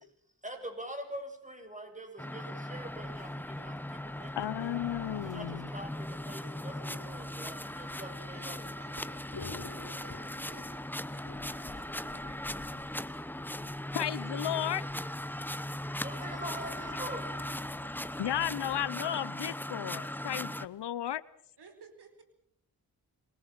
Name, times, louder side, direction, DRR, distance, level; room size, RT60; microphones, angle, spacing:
voice 1, 0.4-4.8 5.2-8.6 16.0-17.3, right 1 dB, 20° right, 5 dB, 7.4 m, -44 dB
sound 1, 2.2-20.7, left 1 dB, 5° left, 1.0 m, -39 dB
sound 2, 2.7-18.9, right 3 dB, 45° right, 5.9 m, -58 dB
voice 2, 4.4-5.7 13.9-14.8 18.2-21.2, left 11 dB, 80° left, 18 dB, 1.0 m, -34 dB
voice 3, 8.0-9.3 9.6-12.9 16.0-18.9 19.2-19.6 21.6-22.2, right 4 dB, 75° right, 8 dB, 5.0 m, -58 dB
Thunder / Rain, 8.2-20.9, left 4 dB, 55° left, 4.3 m, -52 dB
27.0 x 22.5 x 6.0 m, 0.68 s
cardioid pair, 75°, 40 cm